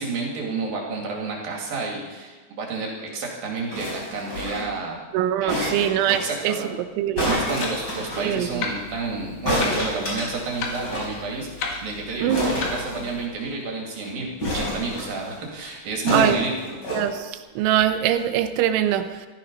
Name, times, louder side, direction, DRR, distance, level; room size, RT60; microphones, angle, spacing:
voice 1, 0.0-5.0 5.4-6.8 7.2-16.8, right 3 dB, 55° right, -1 dB, 3.6 m, -30 dB
sound 1, 3.7-4.8 5.5-6.2 7.1-8.3 9.4-11.1 11.4-11.5 11.7-11.9 12.3-13.5 14.4-15.3 16.1-17.0 17.8-17.9, left 1 dB, 20° left, 5.5 m, -28 dB
voice 2, 5.1-6.5 7.0-7.3 8.2-8.5 12.2-12.5 16.1-16.4 16.9-19.3, right 11 dB, 90° right, 9 dB, 3.3 m, -23 dB
Clock, 7.4-13.3, left 4 dB, 60° left, 3.2 m, -35 dB
15.5 x 13.5 x 5.3 m, 1.3 s
omnidirectional pair, 5.3 m